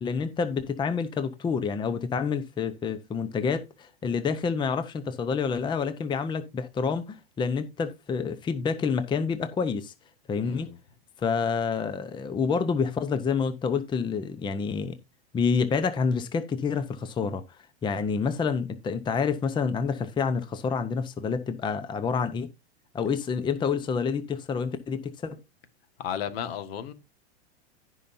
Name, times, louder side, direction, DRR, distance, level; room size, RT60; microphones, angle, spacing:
voice 1, 0.0-9.9 10.3-10.7 11.2-15.0 15.3-17.4 17.8-22.5 22.9-25.4, left 5 dB, 15° left, 0.8 m, -28 dB
voice 2, 10.4-10.8 26.0-26.9, left 9 dB, 65° left, 1.7 m, -34 dB
16.0 x 5.5 x 2.6 m
hypercardioid pair, 130°, 32 cm